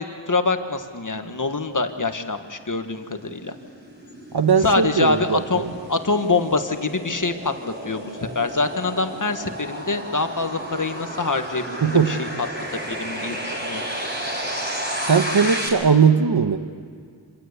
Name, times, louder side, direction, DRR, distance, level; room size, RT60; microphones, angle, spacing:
voice 1, 0.0-3.5 4.6-12.5 12.8-14.1, left 3 dB, 40° left, 1.6 m, -25 dB
sound 1, 2.5-15.7, right 1 dB, 20° right, 5.4 m, -32 dB
voice 2, 4.3-5.7 11.8-12.2 15.0-16.6, right 6 dB, 50° right, 1.2 m, -19 dB
26.5 x 16.5 x 8.3 m
wide cardioid pair, 75°, 47 cm